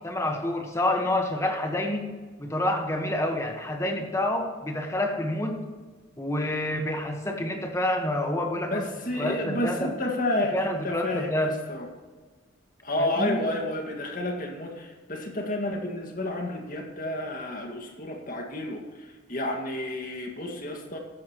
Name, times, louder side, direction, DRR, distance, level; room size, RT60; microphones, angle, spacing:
voice 1, 0.0-2.1 2.4-5.6 6.2-8.8 9.2-9.9 10.5-11.6 13.0-13.4, left 1 dB, 15° left, 3 dB, 1.3 m, -28 dB
voice 2, 8.7-11.9 12.8-21.0, left 1 dB, 40° left, 2 dB, 1.9 m, -31 dB
14.0 x 11.5 x 3.1 m, 1.4 s
head